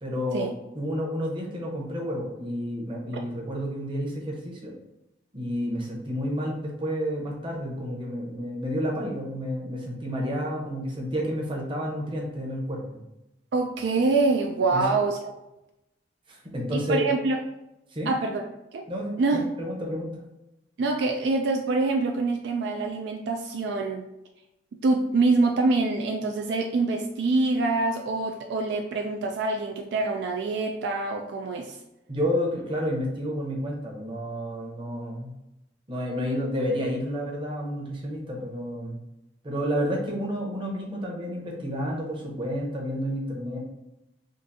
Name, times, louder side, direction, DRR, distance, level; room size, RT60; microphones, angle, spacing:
voice 1, 0.0-4.7 5.3-13.0 14.7-14.8 16.3-17.0 17.9-18.1 18.9-20.2 32.1-35.4 35.9-39.0 39.4-43.6, equal, 30° right, -2 dB, 0.8 m, -30 dB
voice 2, 13.5-15.3 16.7-17.4 18.1-18.4 18.7-18.8 19.2-19.4 20.8-24.0 24.8-31.8, right 3 dB, 70° right, 2 dB, 0.3 m, -25 dB
3.8 x 2.5 x 2.6 m, 0.92 s
head